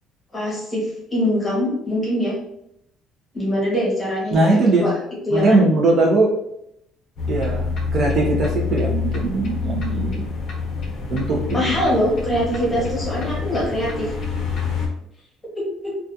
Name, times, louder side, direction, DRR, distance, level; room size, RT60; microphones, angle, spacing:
voice 1, 0.3-2.3 3.3-4.9 5.3-5.7 11.5-14.1 15.6-16.0, equal, 15° left, -5 dB, 0.9 m, -23 dB
voice 2, 4.3-4.9 5.3-6.4 7.3-10.3 11.1-11.8 12.7-12.8, right 2 dB, 40° right, -2 dB, 0.5 m, -20 dB
sound 1, 7.2-14.9, left 5 dB, 45° left, 0.6 m, -27 dB
2.3 x 2.2 x 2.6 m, 0.76 s
cardioid pair, 160°, 0 cm